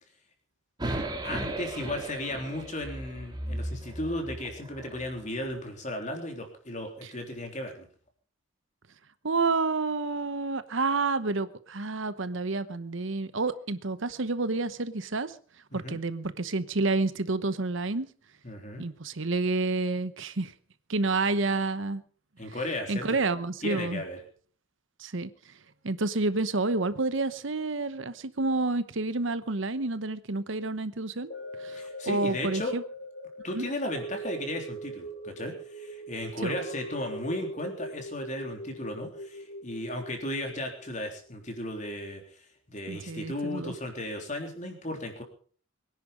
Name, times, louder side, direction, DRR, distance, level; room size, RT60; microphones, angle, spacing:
sound 1, 0.8-5.0, right 1 dB, 20° right, 2.9 m, -36 dB
voice 1, 1.2-7.9 15.7-16.0 18.4-18.8 22.4-23.1 23.6-24.2 31.7-32.7 33.4-42.2 42.7-45.2, left 1 dB, 35° left, 4 dB, 3.6 m, -35 dB
voice 2, 9.2-15.4 15.7-18.1 18.8-20.5 20.9-22.0 22.4-22.6 22.9-24.0 25.0-25.6 25.8-31.3 31.6-31.8 32.1-32.8 33.4-33.7 36.4-36.6 42.9-43.7, right 3 dB, 70° right, 13 dB, 1.0 m, -29 dB
sound 2, 31.3-41.7 42.1-42.2, equal, 50° left, 3.8 m, -41 dB
23.0 x 10.5 x 5.2 m, 0.43 s
head